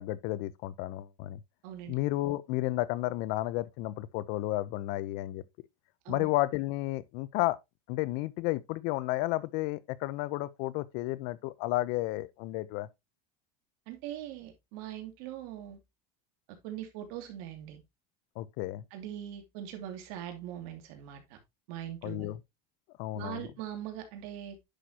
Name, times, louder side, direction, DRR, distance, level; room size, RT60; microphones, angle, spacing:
voice 1, 0.0-1.4 1.9-5.4 6.1-7.6 7.9-12.9 18.4-18.8 22.0-22.4 23.0-23.5, left 17 dB, 60° left, 0.8 m, -32 dB
voice 2, 1.6-1.9 6.0-6.3 13.9-15.8 16.6-17.8 18.9-21.4 21.7-22.3 23.1-24.6, right 11 dB, 65° right, 2.6 m, -41 dB
10.0 x 6.0 x 2.9 m
supercardioid pair, 130°, 19 cm